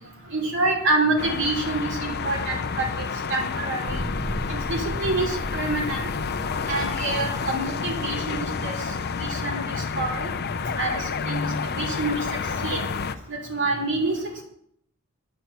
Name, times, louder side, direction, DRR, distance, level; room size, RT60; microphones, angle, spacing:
voice 1, 0.3-3.0 3.3-4.0 4.5-6.1 6.7-8.7 9.2-10.3 10.7-12.2 12.6-12.8 13.3-14.2, right 2 dB, 55° right, 0 dB, 2.9 m, -27 dB
sound 1, 1.2-13.2, left 5 dB, 45° left, 0.5 m, -29 dB
sound 2, 3.8-8.7, equal, 35° right, 3.2 m, -36 dB
9.3 x 6.0 x 8.2 m, 0.70 s
head